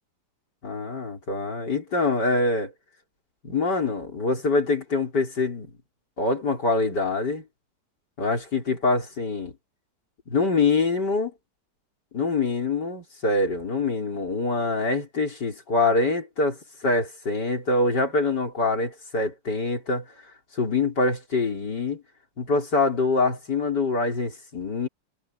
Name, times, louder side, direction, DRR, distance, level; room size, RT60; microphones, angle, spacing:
voice 1, 0.6-2.7 3.4-5.7 6.2-7.4 8.2-9.5 10.3-11.3 12.1-20.1 20.5-22.0 22.4-24.9, left 3 dB, 85° left, 5.3 m, -25 dB
omnidirectional pair, 1.8 m